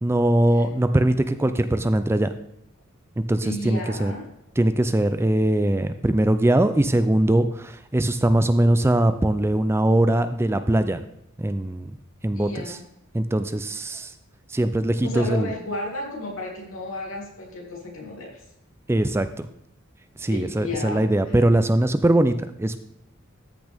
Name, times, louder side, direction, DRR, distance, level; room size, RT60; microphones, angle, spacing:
voice 1, 0.0-2.3 3.2-4.1 4.6-11.0 11.4-11.9 12.2-12.8 13.1-14.1 14.5-15.5 18.9-19.5 20.2-22.8, right 1 dB, 10° right, 11 dB, 0.4 m, -21 dB
voice 2, 3.4-4.3 12.3-12.8 13.7-13.8 15.0-18.4 20.3-21.4, left 1 dB, 80° left, -2 dB, 3.3 m, -33 dB
13.5 x 6.2 x 3.5 m, 0.76 s
head